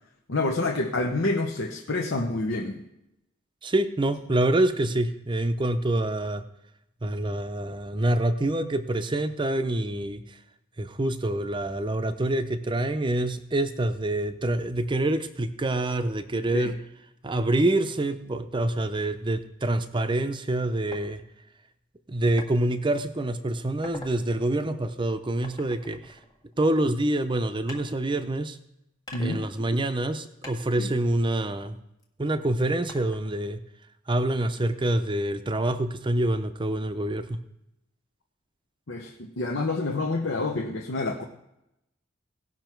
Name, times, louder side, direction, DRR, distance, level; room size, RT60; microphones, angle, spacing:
voice 1, 0.3-2.8 16.5-16.7 29.1-29.4 30.8-30.9 38.9-41.2, left 2 dB, 65° left, 0 dB, 0.9 m, -28 dB
voice 2, 3.6-6.4 7.0-10.2 10.8-16.8 17.2-21.2 22.1-26.2 26.6-28.6 29.2-31.7 32.2-33.6 34.1-37.4, right 1 dB, 25° right, 10 dB, 0.6 m, -26 dB
sound 1, 20.9-21.1 22.4-22.6 23.1-23.3 23.7-24.2 25.4-26.9 27.7-28.6 29.1-30.1 30.4-32.0 32.9-33.5, left 2 dB, 20° left, 1.6 m, -46 dB
17.5 x 5.9 x 4.6 m, 0.85 s
head